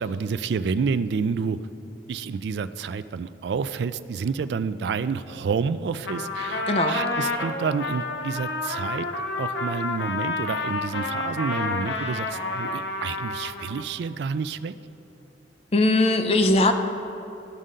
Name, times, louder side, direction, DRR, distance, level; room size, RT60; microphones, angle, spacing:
voice 1, 0.0-1.6 2.1-9.1 9.4-14.7, right 5 dB, 65° right, 13 dB, 0.3 m, -29 dB
Trumpet, 6.0-13.9, left 3 dB, 85° left, 0.8 m, -29 dB
voice 2, 6.7-7.0 15.7-16.7, left 2 dB, 35° left, 7 dB, 0.6 m, -20 dB
15.0 x 5.4 x 3.8 m, 3.0 s
head